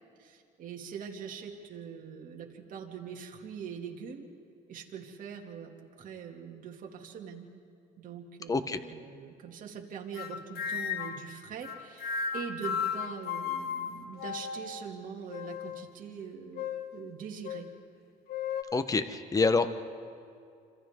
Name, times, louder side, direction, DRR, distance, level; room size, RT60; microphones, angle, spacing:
voice 1, 0.2-4.3 4.7-5.7 6.0-7.5 8.0-17.7, right 7 dB, 55° right, 1 dB, 2.4 m, -43 dB
voice 2, 8.5-8.8 18.7-19.7, left 4 dB, 20° left, 10 dB, 1.0 m, -26 dB
sound 1, 10.1-11.3 11.6-14.8 15.3-15.9 16.5-16.9 17.4-17.6 18.3-18.6, left 7 dB, 65° left, 1.2 m, -35 dB
29.0 x 26.5 x 3.7 m, 2.3 s
cardioid pair, 110°, 17 cm